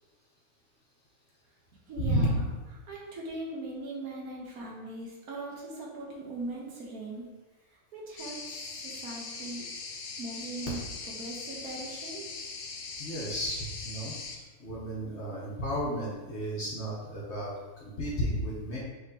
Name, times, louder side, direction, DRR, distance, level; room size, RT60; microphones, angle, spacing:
voice 1, 1.9-2.5 2.9-7.2 7.9-8.4 8.8-9.7 10.2-10.8 11.1-12.3, right 2 dB, 65° right, -3 dB, 1.2 m, -39 dB
sound 1, 8.2-14.4, left 4 dB, 65° left, 0.7 m, -41 dB
voice 2, 13.0-18.8, equal, 45° left, -6 dB, 1.1 m, -33 dB
5.3 x 3.4 x 2.8 m, 1.2 s
omnidirectional pair, 1.8 m